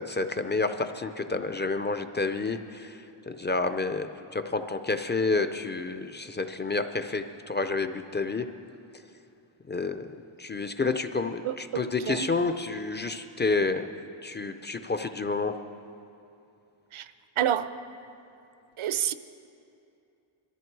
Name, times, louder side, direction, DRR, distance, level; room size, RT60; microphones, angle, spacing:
voice 1, 0.0-3.0 3.3-8.5 9.7-10.1 10.4-13.8 14.2-15.6, left 3 dB, 25° left, 8 dB, 0.4 m, -29 dB
voice 2, 11.4-12.3 16.9-17.1 17.4-17.7 18.8-19.1, right 10 dB, 80° right, 13 dB, 0.8 m, -28 dB
22.5 x 14.0 x 4.6 m, 2.7 s
wide cardioid pair, 160°, 49 cm